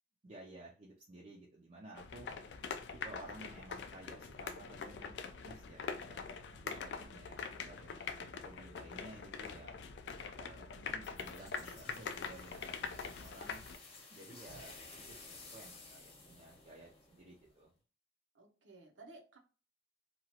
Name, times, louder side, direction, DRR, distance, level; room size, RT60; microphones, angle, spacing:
voice 1, 0.2-2.3 2.9-9.9 10.3-13.6 14.1-17.7, right 1 dB, 40° right, 0.5 m, -55 dB
sound 1, 2.0-13.8, left 5 dB, 60° left, 0.3 m, -44 dB
voice 2, 6.8-7.2 18.3-19.4, right 2 dB, 75° right, 0.7 m, -57 dB
sound 2, 11.0-17.6, left 3 dB, 30° left, 0.9 m, -55 dB
2.9 x 2.3 x 2.8 m
head